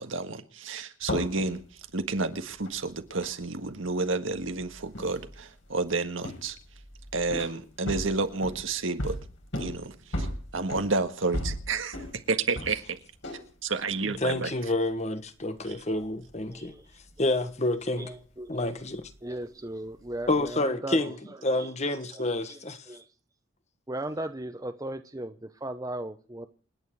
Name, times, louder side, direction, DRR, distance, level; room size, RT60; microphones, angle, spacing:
voice 1, 0.0-1.6 1.9-6.6 7.1-9.2 9.6-10.3 10.5-12.0 12.3-13.0 13.6-14.5, right 3 dB, 75° right, 1.7 m, -30 dB
sound 1, 1.0-13.5 13.8-14.9 15.3-17.6 17.9-19.5 19.9-20.5, equal, 70° left, 5.1 m, -38 dB
voice 2, 14.0-16.8 17.2-18.1 18.5-19.1 20.3-21.1 21.4-22.8, left 2 dB, 35° left, 1.3 m, -28 dB
voice 3, 16.5-16.9 18.0-18.7 19.2-21.7 22.1-22.6 22.9-23.1 23.9-26.5, right 1 dB, 15° right, 0.8 m, -37 dB
28.5 x 9.4 x 4.7 m
head